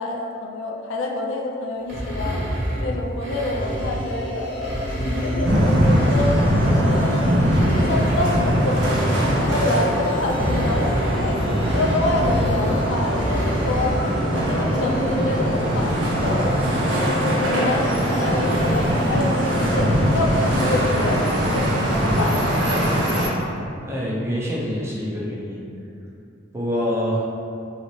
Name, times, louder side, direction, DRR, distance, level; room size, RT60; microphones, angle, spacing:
voice 1, 0.0-2.5 2.8-4.5 5.0-5.6 5.9-6.5 6.8-7.4 7.7-11.4 11.7-14.0 14.5-16.5 17.2-22.6, left 2 dB, 80° left, 1 dB, 0.4 m, -27 dB
sound 1, 1.9-4.1 4.5-6.9 7.4-14.1, equal, 50° right, 0.9 m, -28 dB
sound 2, 3.6-21.4, left 1 dB, 45° left, 0.8 m, -32 dB
sound 3, 5.4-23.3, equal, 70° right, 0.6 m, -21 dB
voice 2, 23.9-25.6 26.5-27.2, equal, 15° right, -5 dB, 0.5 m, -26 dB
3.1 x 2.7 x 3.1 m, 2.7 s
head